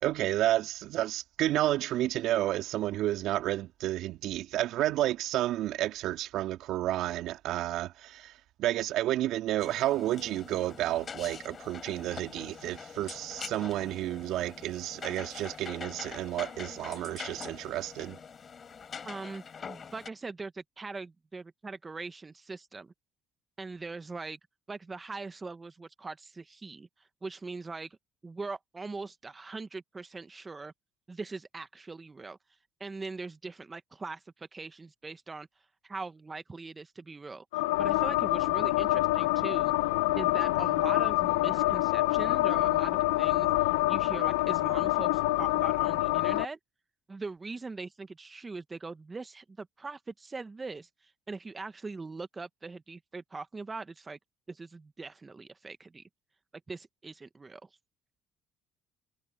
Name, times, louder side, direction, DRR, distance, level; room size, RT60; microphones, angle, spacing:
voice 1, 0.0-8.3 8.6-18.2, right 14 dB, 70° right, 2.3 m, -31 dB
sound 1, 9.6-20.1, left 6 dB, 40° left, 6.7 m, -44 dB
voice 2, 19.0-22.9 23.6-24.4 24.7-28.0 28.2-30.7 31.1-32.4 32.8-35.5 35.8-37.4 37.8-39.7 40.1-46.6 47.1-54.2 54.5-56.0 56.7-57.7, right 3 dB, 25° right, 1.3 m, -41 dB
sound 2, 37.5-46.5, left 18 dB, 90° left, 0.8 m, -26 dB
supercardioid pair, 70°, 0 cm